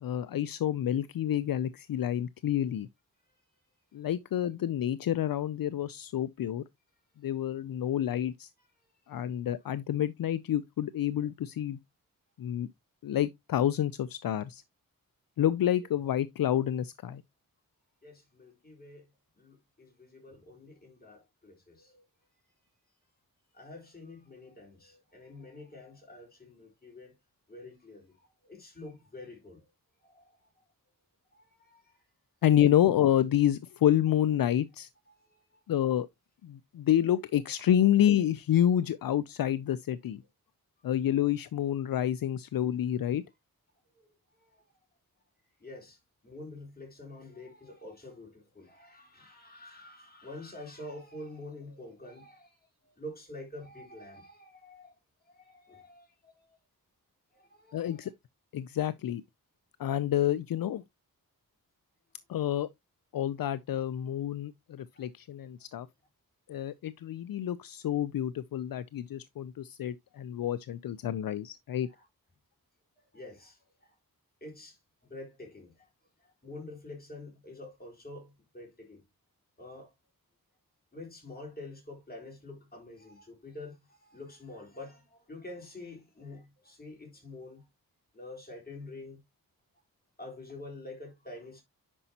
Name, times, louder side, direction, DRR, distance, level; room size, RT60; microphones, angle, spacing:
voice 1, 0.0-2.9 3.9-6.6 7.2-8.5 9.1-11.8 12.4-12.7 13.0-14.6 15.4-17.2 32.4-34.9 35.7-36.1 36.4-40.2 40.8-43.2 57.7-58.1 58.5-59.2 59.8-60.8 62.3-62.7 63.1-65.9 66.5-71.9, left 11 dB, 70° left, 0.5 m, -28 dB
voice 2, 18.0-19.1 19.4-22.0 23.5-27.1 27.5-29.6 30.0-30.3 31.3-32.0 35.1-35.2 44.4-44.6 45.6-46.0 46.2-52.6 53.0-54.9 55.3-56.6 57.3-58.1 65.0-65.1 71.9-72.1 73.1-73.6 74.4-74.8 75.1-75.7 76.4-79.0 79.6-79.9 80.9-87.6 88.1-89.2 90.2-91.6, left 2 dB, 25° left, 3.9 m, -47 dB
9.8 x 5.4 x 2.8 m
wide cardioid pair, 105°, 36 cm